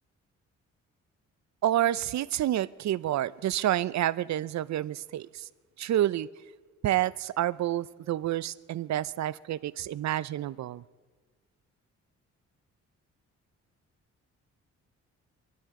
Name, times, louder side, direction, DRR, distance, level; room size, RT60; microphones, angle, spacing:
voice 1, 1.6-5.5 5.8-6.3 6.8-10.8, right 13 dB, 65° right, 18 dB, 0.6 m, -29 dB
25.0 x 12.0 x 3.7 m, 1.4 s
supercardioid pair, 65°, 30 cm